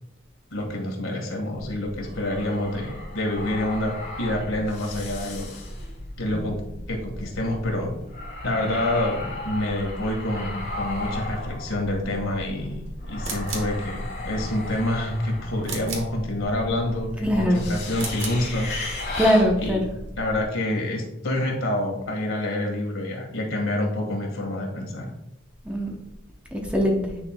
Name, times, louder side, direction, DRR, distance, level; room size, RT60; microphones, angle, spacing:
voice 1, 0.5-3.9 4.2-5.5 6.2-6.6 6.9-7.9 8.4-18.8 19.6-19.8 20.2-25.1, left 1 dB, 70° left, 0 dB, 1.8 m, -27 dB
sound 1, 1.6-20.4, left 1 dB, 50° left, 2.1 m, -35 dB
sound 2, 13.2-13.8 15.6-16.2 17.9-18.5, right 4 dB, 60° right, 1.2 m, -34 dB
voice 2, 17.2-17.7 19.2-19.9 25.6-26.0 26.5-27.2, equal, 5° right, 0 dB, 0.8 m, -22 dB
9.8 x 4.5 x 2.3 m, 0.88 s
head